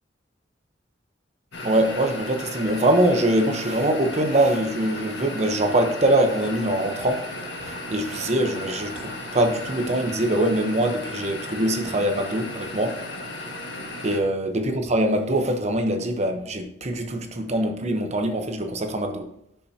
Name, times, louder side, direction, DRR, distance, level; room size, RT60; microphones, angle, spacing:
sound 1, 1.5-14.2, left 1 dB, 70° left, 1.5 m, -35 dB
voice 1, 1.6-7.2 7.7-13.0 14.0-19.3, right 1 dB, 40° right, 5 dB, 0.9 m, -23 dB
11.0 x 5.7 x 2.8 m, 0.74 s
head